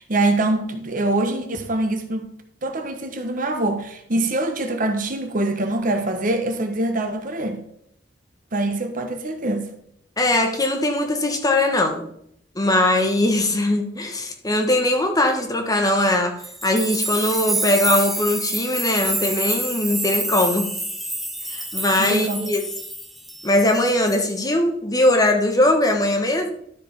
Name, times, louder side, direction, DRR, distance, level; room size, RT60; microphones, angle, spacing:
voice 1, 0.0-2.3 2.6-7.6 8.5-9.7 22.0-22.5, right 2 dB, 45° right, 1.2 m, -24 dB
voice 2, 10.2-12.1 12.5-16.3 16.6-20.7 21.5-22.6 23.4-26.5, left 1 dB, 20° left, 1.2 m, -20 dB
sound 1, 16.4-23.8 24.1-24.4, right 1 dB, ahead, 0.7 m, -28 dB
12.0 x 5.1 x 5.2 m
head